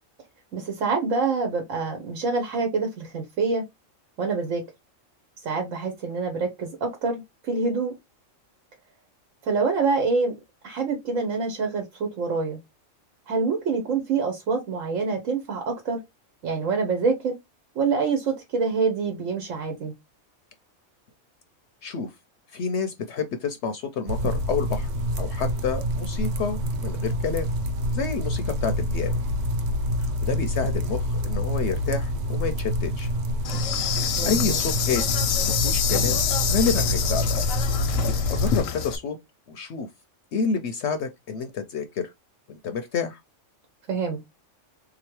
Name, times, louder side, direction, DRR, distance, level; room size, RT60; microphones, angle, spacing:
voice 1, 0.5-3.6 4.2-4.6 5.4-7.9 9.4-10.4 10.6-12.6 13.3-16.0 16.4-17.4 17.7-19.9 34.2-34.6 43.9-44.2, right 4 dB, 80° right, 1.3 m, -26 dB
voice 2, 22.5-24.9 25.2-27.5 27.9-29.2 30.0-33.1 33.8-37.2 38.0-39.2 39.5-39.9 40.3-42.1 42.5-43.2, left 5 dB, 65° left, 0.8 m, -29 dB
sound 1, 24.1-38.6, equal, 60° right, 0.8 m, -27 dB
Insect, 33.4-39.0, left 8 dB, 85° left, 1.1 m, -27 dB
3.7 x 2.9 x 3.0 m
omnidirectional pair, 1.4 m